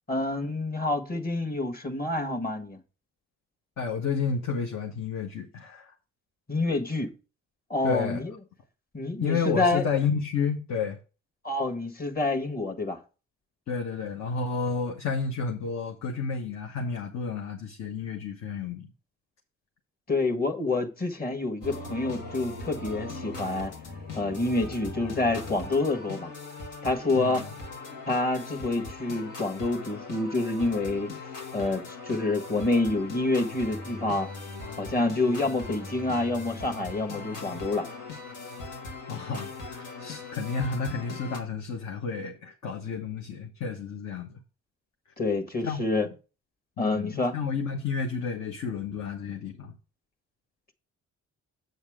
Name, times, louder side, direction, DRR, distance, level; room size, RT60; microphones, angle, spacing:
voice 1, 0.1-2.8 6.5-7.1 7.7-8.3 8.9-9.8 11.4-13.0 20.1-23.7 24.1-26.3 26.8-27.4 28.1-31.1 31.5-34.3 34.8-37.9 45.2-46.1 46.8-47.3, left 2 dB, 30° left, 1.7 m, -27 dB
voice 2, 3.8-5.9 7.8-8.2 9.2-11.0 13.7-18.9 27.1-27.5 39.1-44.4 45.6-46.1 46.8-49.7, left 5 dB, 65° left, 1.3 m, -31 dB
sound 1, 21.6-41.4, left 3 dB, 80° left, 2.0 m, -40 dB
8.0 x 7.2 x 3.7 m
cardioid pair, 90°, 30 cm